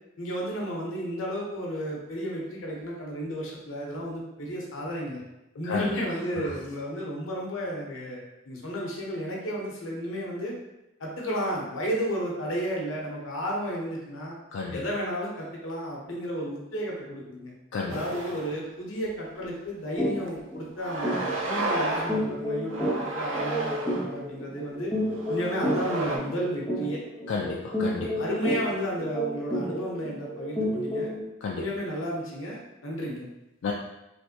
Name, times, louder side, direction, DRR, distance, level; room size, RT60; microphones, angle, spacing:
voice 1, 0.2-5.2 5.6-10.5 11.0-14.3 14.7-17.5 17.9-24.9 25.3-27.0 28.2-31.1 31.5-33.3, equal, 90° left, -2 dB, 0.9 m, -33 dB
sound 1, 17.9-18.6 19.1-19.2 20.2-20.3 20.8-22.2 22.7-24.1 24.9-26.2, right 2 dB, 85° right, 0.5 m, -32 dB
sound 2, 20.0-20.2 20.5-20.7 21.0-31.3, equal, ahead, 1.0 m, -30 dB
voice 2, 27.3-28.1 31.4-31.6 33.6-33.7, left 4 dB, 70° left, -2 dB, 0.3 m, -31 dB
3.3 x 2.5 x 2.7 m, 0.94 s
head